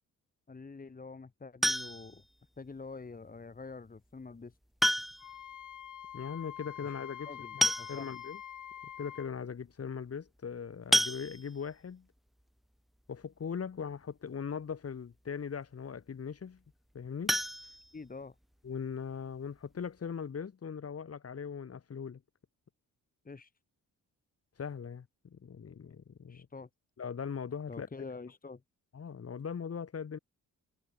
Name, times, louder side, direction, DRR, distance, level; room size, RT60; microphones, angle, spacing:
voice 1, 0.5-2.2 2.6-4.5 6.8-6.9 7.2-8.1 17.9-18.3 23.2-23.5 26.3-26.7 27.7-28.6, left 4 dB, 25° left, 2.4 m, -46 dB
sound 1, 1.6-2.2 3.7-3.8 4.8-5.4 5.7-5.8 6.1-6.2 7.2-7.3 7.6-8.3 8.9-9.0 9.3-9.5 10.9-11.7 17.2-18.4 18.8-18.9 19.3-19.4 19.8-19.9, equal, ahead, 1.5 m, -30 dB
Wind instrument woodwind instrument, 5.2-9.3, left 10 dB, 65° left, 2.8 m, -46 dB
voice 2, 6.1-8.4 9.0-12.1 13.1-16.6 16.9-17.4 18.6-22.2 24.6-26.5 27.0-27.9 28.9-30.2, left 6 dB, 45° left, 3.7 m, -40 dB
cardioid pair, 95°, 34 cm